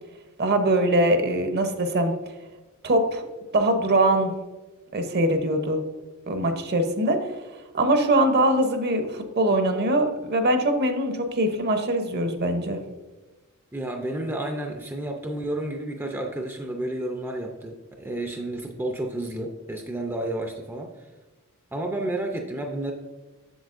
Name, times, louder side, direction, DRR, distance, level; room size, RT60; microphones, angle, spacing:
voice 1, 0.4-2.1 2.8-3.2 3.5-4.3 4.9-5.8 6.3-7.2 7.7-12.8, right 1 dB, 50° right, 7 dB, 0.8 m, -22 dB
voice 2, 13.7-21.1 21.7-22.9, right 1 dB, 10° right, 2 dB, 0.5 m, -31 dB
7.9 x 6.9 x 2.5 m, 1.2 s
head